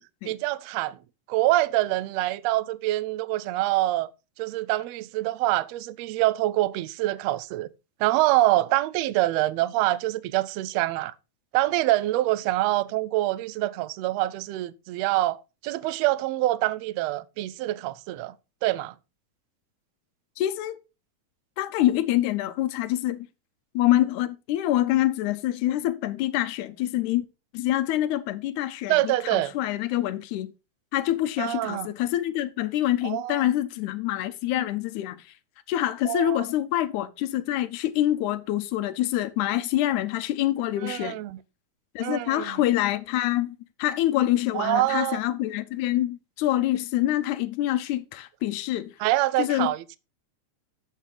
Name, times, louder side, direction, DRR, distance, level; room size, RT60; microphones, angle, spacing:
voice 1, 0.3-1.0 1.3-4.1 4.4-7.7 8.0-11.1 11.5-15.4 15.6-18.3 18.6-18.9 28.9-29.5 31.4-31.9 33.0-33.4 36.1-36.4 40.8-41.4 42.0-42.5 44.5-45.2 49.0-50.0, right 17 dB, 80° right, 1.6 m, -25 dB
voice 2, 20.4-20.8 21.6-23.3 23.7-27.2 27.5-30.5 30.9-35.3 35.7-41.2 42.0-48.9 49.4-49.7, left 14 dB, 85° left, 2.2 m, -26 dB
9.1 x 7.1 x 3.9 m
omnidirectional pair, 3.4 m